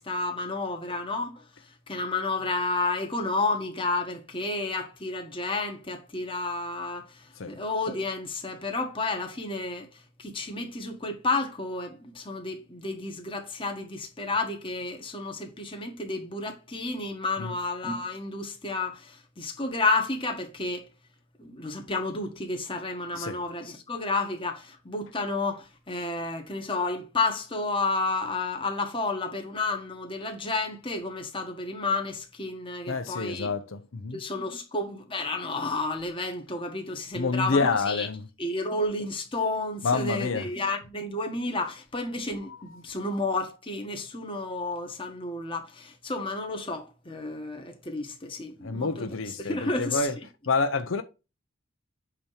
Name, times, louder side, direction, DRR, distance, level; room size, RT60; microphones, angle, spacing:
voice 1, 0.0-1.3 1.9-7.0 7.5-9.9 10.2-20.8 21.4-33.5 34.1-38.1 38.4-49.0 49.4-50.1, left 3 dB, 25° left, 1.5 m, -31 dB
voice 2, 32.9-34.2 37.1-38.3 39.8-40.5 42.5-42.8 48.6-50.2 50.5-51.0, left 4 dB, 80° left, 0.7 m, -28 dB
8.5 x 2.9 x 4.9 m
head